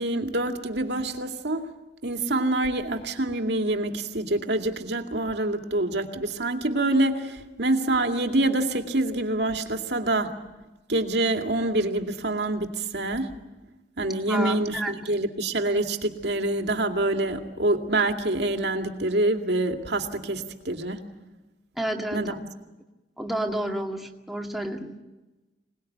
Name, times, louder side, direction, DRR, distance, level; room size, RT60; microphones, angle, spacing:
voice 1, 0.0-1.7 2.0-10.4 10.9-13.3 14.0-21.1 22.1-22.5, right 2 dB, 65° right, 5 dB, 2.3 m, -26 dB
voice 2, 14.3-14.9 21.8-22.3 23.2-24.9, right 1 dB, ahead, 1 dB, 2.1 m, -30 dB
26.5 x 19.5 x 9.3 m, 1.1 s
head